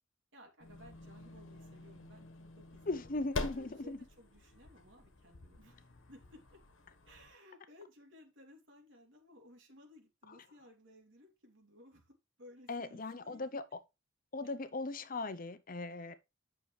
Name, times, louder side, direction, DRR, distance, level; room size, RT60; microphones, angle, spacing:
voice 1, 0.3-2.3 2.6-3.1 3.5-6.6 7.0-13.5, left 1 dB, 65° right, 2.9 m, -59 dB
sound 1, 0.6-7.3, left 3 dB, 70° left, 1.3 m, -46 dB
voice 2, 2.9-4.0 12.7-13.6 14.3-16.1, left 2 dB, 45° left, 0.7 m, -38 dB
9.3 x 6.4 x 3.3 m
head